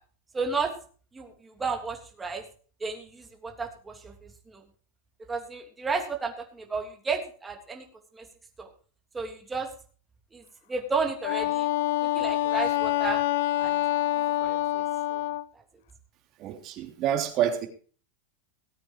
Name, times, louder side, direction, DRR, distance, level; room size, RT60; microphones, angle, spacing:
voice 1, 0.3-0.7 1.1-2.4 2.8-4.1 4.5-4.6 5.3-7.8 8.1-8.3 8.6-8.7 9.1-9.7 10.3-10.4 10.7-11.7 12.0-13.2 13.6-13.8 14.4-14.8 15.1-15.2, right 4 dB, 15° right, 3.0 m, -32 dB
Wind instrument woodwind instrument, 11.2-15.5, left 15 dB, 70° left, 0.6 m, -26 dB
voice 2, 16.4-17.7, right 10 dB, 40° right, 3.3 m, -27 dB
18.5 x 8.7 x 4.8 m
supercardioid pair, 135°, 0 cm